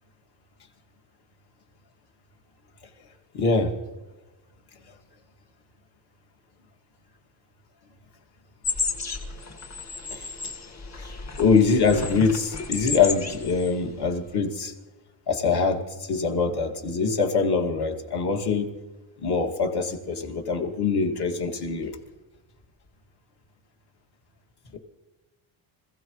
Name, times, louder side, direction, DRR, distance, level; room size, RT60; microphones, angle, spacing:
voice 1, 3.3-3.7 10.1-10.3 11.0-11.1 11.4-14.7 15.3-18.7 19.2-22.0, left 4 dB, 55° left, 2 dB, 2.4 m, -24 dB
sound 1, 8.6-13.8 14.0-14.3, left 4 dB, 35° left, 1.8 m, -33 dB
26.5 x 16.0 x 3.2 m, 1.1 s
cardioid pair, 140°, 46 cm